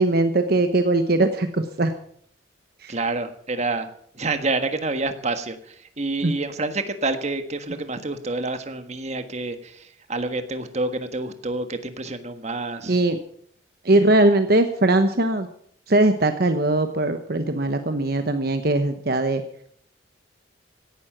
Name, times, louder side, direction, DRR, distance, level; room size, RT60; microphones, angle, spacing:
voice 1, 0.0-1.9 2.8-2.9 6.2-6.3 12.9-13.2 13.8-15.5 15.9-19.4, right 2 dB, 55° right, 8 dB, 1.1 m, -20 dB
voice 2, 2.9-13.0, right 2 dB, 35° right, 8 dB, 1.4 m, -28 dB
16.5 x 11.5 x 6.0 m, 0.64 s
head